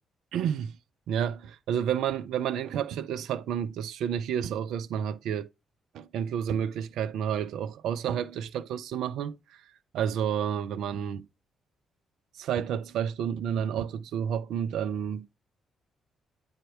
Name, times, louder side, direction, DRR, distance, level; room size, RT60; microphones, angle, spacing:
voice 1, 0.3-0.7 1.1-5.5 5.9-9.4 9.9-11.3 12.4-15.4, right 8 dB, 65° right, 0.3 m, -30 dB
8.7 x 3.6 x 3.0 m
hypercardioid pair, 40°, 0 cm